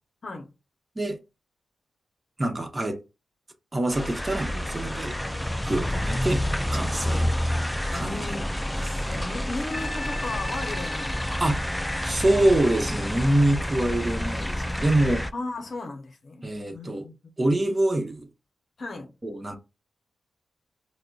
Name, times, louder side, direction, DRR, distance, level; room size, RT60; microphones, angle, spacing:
voice 1, 0.2-0.5 7.0-7.3 7.9-8.6 9.1-11.5 15.3-16.5 16.7-17.1 18.8-19.1, left 2 dB, 60° left, 0.6 m, -36 dB
voice 2, 2.4-3.0 3.7-5.2 5.6-6.4 6.7-7.5 7.9-8.4 8.8-9.1 11.4-11.6 12.0-15.3 16.4-17.1 17.4-18.3 19.2-19.6, right 1 dB, 30° right, 0.9 m, -25 dB
sound 1, 3.9-15.3, left 1 dB, 10° left, 0.3 m, -29 dB
sound 2, 9.7-15.0 15.5-15.8, left 1 dB, 30° left, 1.0 m, -40 dB
4.9 x 2.1 x 2.3 m
supercardioid pair, 50°, 0 cm